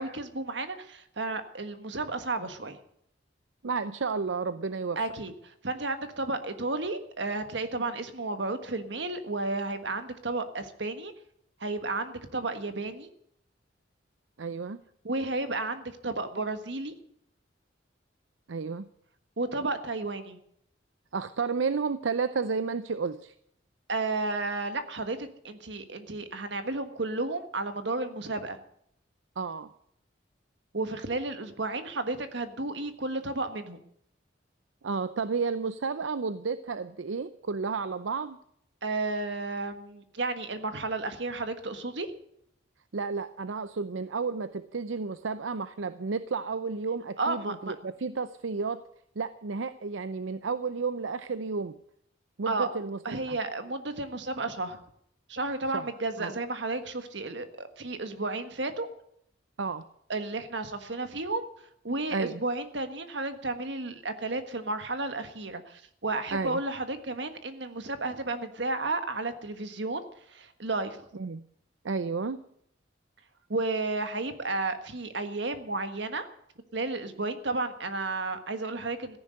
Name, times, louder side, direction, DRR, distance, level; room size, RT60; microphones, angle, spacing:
voice 1, 0.0-2.8 4.9-11.1 11.6-13.1 15.0-16.9 19.4-20.4 23.9-28.6 30.7-33.8 38.8-42.1 47.2-47.7 52.5-52.7 53.0-54.8 55.3-58.9 60.1-61.5 61.8-71.0 73.5-76.3 76.7-79.2, right 2 dB, 65° right, 9 dB, 1.5 m, -32 dB
voice 2, 3.6-5.0 14.4-14.8 18.5-18.9 21.1-23.3 29.4-29.7 34.8-38.4 42.9-48.8 49.2-51.8 52.4-53.4 55.7-55.9 56.2-56.3 59.6-59.9 62.1-62.4 66.3-66.6 71.1-71.4 71.8-72.4, right 4 dB, 85° right, 13 dB, 0.6 m, -32 dB
14.5 x 10.5 x 7.8 m, 0.71 s
head